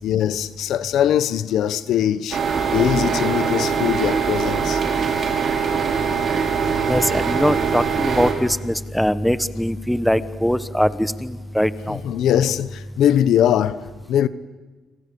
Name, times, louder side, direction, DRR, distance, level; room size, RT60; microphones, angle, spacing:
voice 1, 0.0-2.4 2.7-4.8 11.9-14.3, left 10 dB, 80° left, 1.0 m, -21 dB
sound 1, 2.3-8.3, right 6 dB, 55° right, 6.4 m, -22 dB
voice 2, 6.9-12.0, equal, ahead, 1.2 m, -21 dB
29.5 x 26.0 x 7.0 m
cardioid pair, 90°, 0 cm